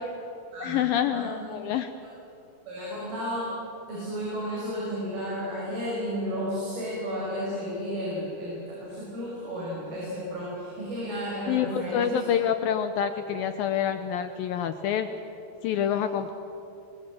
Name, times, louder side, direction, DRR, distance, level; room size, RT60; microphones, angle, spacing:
voice 1, 0.6-1.9 11.5-15.1 15.6-16.3, left 9 dB, 75° left, 8 dB, 2.2 m, -27 dB
voice 2, 2.7-3.5 3.9-12.2, equal, 60° right, -5 dB, 7.5 m, -32 dB
25.5 x 23.5 x 7.6 m, 2.9 s
omnidirectional pair, 5.1 m